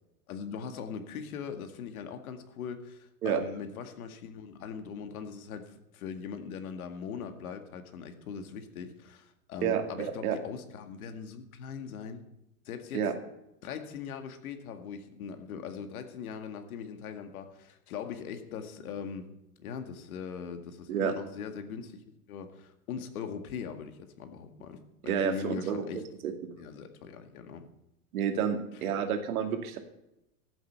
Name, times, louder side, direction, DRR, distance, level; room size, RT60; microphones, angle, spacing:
voice 1, 0.3-12.2 12.7-13.1 13.6-19.3 19.6-22.0 22.3-26.0 26.6-27.7, left 6 dB, 75° left, 7 dB, 2.1 m, -40 dB
voice 2, 9.6-10.3 12.9-13.1 20.9-21.1 25.1-25.8 26.2-26.3 28.1-29.8, right 8 dB, 75° right, 5 dB, 2.5 m, -29 dB
14.0 x 8.2 x 6.8 m, 0.88 s
supercardioid pair, 155°, 44 cm